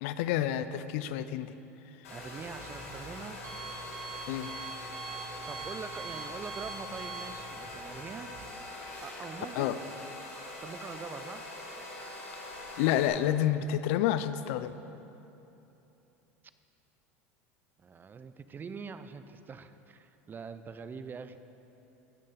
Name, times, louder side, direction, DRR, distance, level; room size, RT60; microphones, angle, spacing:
voice 1, 0.0-1.5 4.3-4.6 9.6-9.8 12.8-14.8, left 11 dB, 65° left, 13 dB, 0.4 m, -29 dB
Domestic sounds home sounds, 2.0-13.1, left 2 dB, 80° left, 2.1 m, -44 dB
Alarm, 2.0-8.4, right 4 dB, 45° right, 1.8 m, -44 dB
voice 2, 2.1-3.4 5.4-8.3 9.0-9.8 10.6-11.4 17.8-21.4, right 5 dB, 25° right, 11 dB, 0.5 m, -43 dB
15.5 x 6.5 x 3.8 m, 3.0 s
hypercardioid pair, 85°, 7 cm